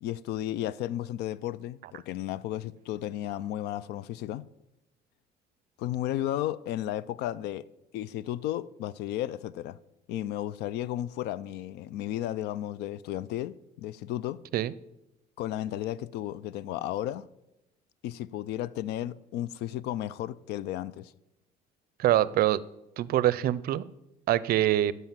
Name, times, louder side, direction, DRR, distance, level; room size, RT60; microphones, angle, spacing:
voice 1, 0.0-4.5 5.8-7.7 7.9-9.8 10.1-14.4 15.4-17.3 18.0-21.1, left 12 dB, 85° left, 0.4 m, -33 dB
voice 2, 22.0-22.6 23.0-23.8 24.3-24.9, right 13 dB, 60° right, 0.5 m, -24 dB
11.5 x 5.6 x 7.3 m
cardioid pair, 110°, 17 cm